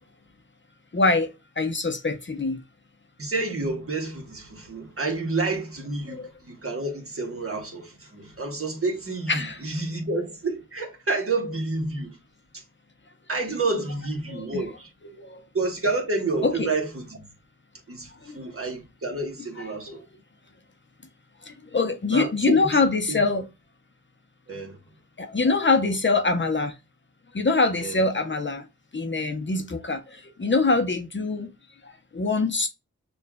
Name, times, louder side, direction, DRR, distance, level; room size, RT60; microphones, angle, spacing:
voice 1, 0.9-2.6 6.1-6.3 9.3-9.6 14.3-14.6 15.2-15.4 16.4-16.7 18.2-18.4 19.6-20.0 21.4-23.5 25.2-26.8 27.3-28.7 28.9-31.5 31.8-32.7, left 3 dB, 40° left, 0.7 m, -24 dB
voice 2, 3.2-12.2 12.5-12.6 13.3-14.9 15.5-17.3 17.9-20.0 22.1-22.8 23.1-23.2 24.5-24.8 27.8-28.0 29.5-29.6, right 3 dB, 45° right, 1.3 m, -29 dB
6.5 x 2.4 x 2.2 m
wide cardioid pair, 65°, 31 cm